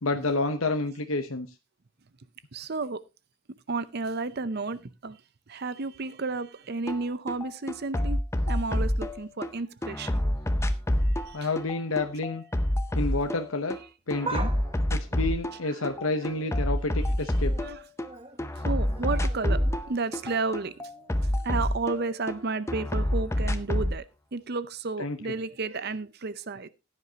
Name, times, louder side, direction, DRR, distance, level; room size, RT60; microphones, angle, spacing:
voice 1, 0.0-1.5 11.3-12.4 12.9-13.8 14.1-14.5 14.9-17.6 25.0-25.4, left 3 dB, 70° left, 0.9 m, -29 dB
voice 2, 2.5-3.0 3.7-5.2 5.5-8.2 8.5-10.2 10.6-10.8 11.0-11.5 15.6-16.3 17.6-17.8 18.6-20.9 21.2-24.0 24.3-26.7, right 3 dB, 50° right, 0.6 m, -32 dB
sound 1, 6.9-7.0 7.3-9.5 9.8-13.8 14.1-15.6 15.8-18.1 18.4-22.4 22.7-24.0, left 1 dB, 15° left, 0.7 m, -27 dB
sound 2, 14.0-16.8 17.2-17.7 18.0-21.9 22.2-22.3 23.3-23.4, right 3 dB, 25° right, 1.1 m, -43 dB
15.5 x 9.8 x 2.8 m
head